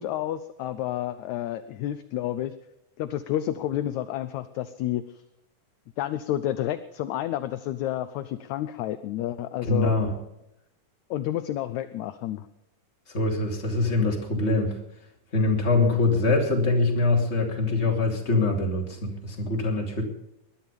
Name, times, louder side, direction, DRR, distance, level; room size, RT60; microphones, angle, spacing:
voice 1, 0.0-2.5 3.0-5.0 6.0-9.9 11.1-12.4, left 12 dB, 75° left, 11 dB, 1.8 m, -30 dB
voice 2, 9.6-10.1 13.1-14.8 15.3-20.0, left 2 dB, 20° left, 1 dB, 2.7 m, -24 dB
20.0 x 11.5 x 5.3 m, 0.85 s
omnidirectional pair, 3.9 m